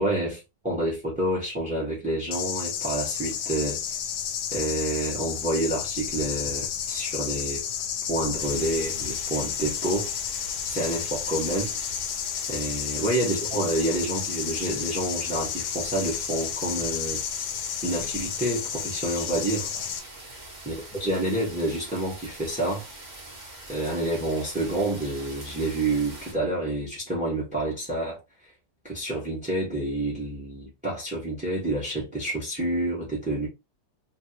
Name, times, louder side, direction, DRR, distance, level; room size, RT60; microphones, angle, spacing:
voice 1, 0.0-3.8 4.5-7.6 8.1-11.7 12.5-17.5 17.8-19.7 20.6-20.7 21.0-22.9 23.7-28.2 28.8-33.5, right 1 dB, 5° right, 1.0 m, -28 dB
sound 1, 2.3-20.0, left 9 dB, 75° left, 1.1 m, -31 dB
sound 2, 8.4-26.3, right 2 dB, 35° right, 0.7 m, -44 dB
2.9 x 2.7 x 2.8 m
omnidirectional pair, 1.9 m